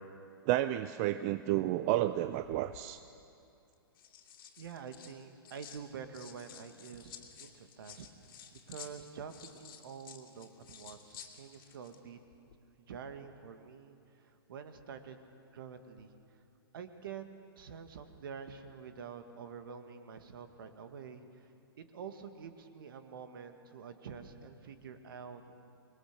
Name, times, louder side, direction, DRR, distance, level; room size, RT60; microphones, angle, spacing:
voice 1, 0.5-3.0, right 14 dB, 40° right, 12 dB, 0.6 m, -31 dB
sound 1, 2.3-2.9 3.7-5.8 6.1-12.0 12.3-12.5, left 9 dB, 60° left, 2.6 m, -53 dB
voice 2, 4.6-8.1 8.5-12.2 12.9-16.1 16.7-17.2 17.5-21.5 21.8-25.5, right 6 dB, 60° right, 8 dB, 1.9 m, -47 dB
25.5 x 21.0 x 6.8 m, 2.6 s
hypercardioid pair, 115°, 13 cm